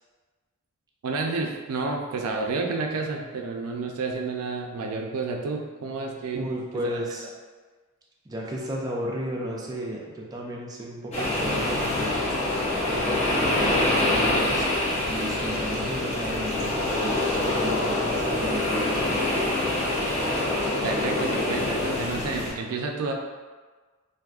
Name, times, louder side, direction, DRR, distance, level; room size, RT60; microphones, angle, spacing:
voice 1, 1.0-6.5 20.8-23.1, right 3 dB, 90° right, 2 dB, 0.4 m, -30 dB
voice 2, 6.3-7.3 8.3-12.3 12.8-19.0, equal, 15° right, -3 dB, 0.3 m, -34 dB
sound 1, 11.1-22.5, left 1 dB, 30° left, 0.6 m, -25 dB
3.5 x 2.6 x 2.4 m, 1.4 s
head